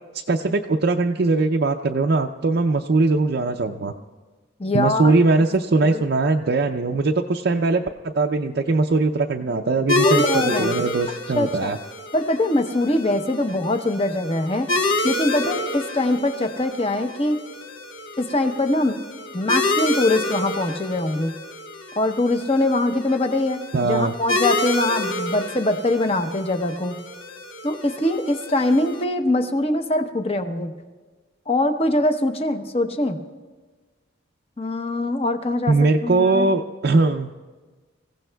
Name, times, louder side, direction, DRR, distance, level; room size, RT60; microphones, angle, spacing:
voice 1, 0.1-3.9 4.7-11.8 23.7-24.1 35.7-37.3, right 3 dB, 50° right, 2 dB, 0.5 m, -21 dB
voice 2, 4.6-5.2 5.9-6.0 10.0-10.8 11.4-11.7 12.1-14.7 15.0-17.4 18.2-19.0 19.3-21.4 22.0-27.0 27.6-30.7 31.5-33.2 34.6-35.7 36.0-36.5, left 1 dB, 30° left, 7 dB, 0.8 m, -23 dB
sound 1, 9.9-29.0, left 2 dB, 80° left, 1.2 m, -28 dB
27.5 x 16.0 x 2.3 m, 1.4 s
head